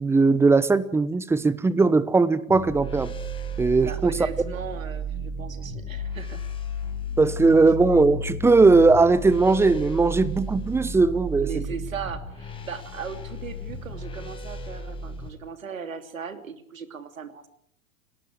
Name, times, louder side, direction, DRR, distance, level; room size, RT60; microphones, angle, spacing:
voice 1, 0.0-3.1 3.6-4.1 7.2-11.6, right 3 dB, 5° right, 0.9 m, -19 dB
sound 1, 2.5-15.3, right 1 dB, 10° left, 5.0 m, -33 dB
voice 2, 3.8-6.4 11.4-17.5, right 6 dB, 70° right, 3.0 m, -37 dB
30.0 x 19.0 x 4.7 m
figure-of-eight pair, 105°, 41 cm